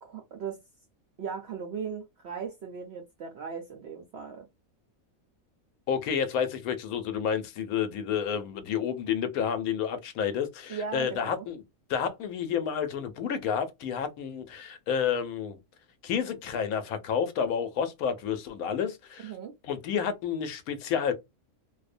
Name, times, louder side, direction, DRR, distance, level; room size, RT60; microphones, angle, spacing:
voice 1, 0.0-0.6 1.2-4.5 10.7-11.5 19.2-19.5, right 6 dB, 65° right, 0.7 m, -38 dB
voice 2, 5.9-11.6 11.9-15.6 16.0-19.3 19.6-21.1, left 7 dB, 80° left, 1.0 m, -30 dB
2.5 x 2.1 x 2.4 m
omnidirectional pair, 1.5 m